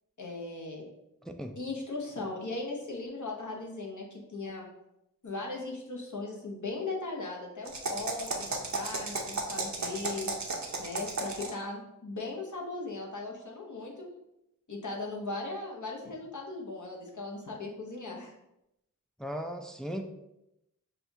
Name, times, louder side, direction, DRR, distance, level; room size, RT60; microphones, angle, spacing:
voice 1, 0.2-0.8 1.6-4.7 5.2-10.3 10.8-14.1 14.7-18.3, left 3 dB, 60° left, -1 dB, 0.9 m, -38 dB
voice 2, 1.2-1.5 19.2-20.0, equal, ahead, 5 dB, 0.3 m, -37 dB
sound 1, 7.7-11.6, right 3 dB, 55° right, 0.6 m, -34 dB
5.6 x 2.3 x 2.7 m, 0.86 s
wide cardioid pair, 45°, 34 cm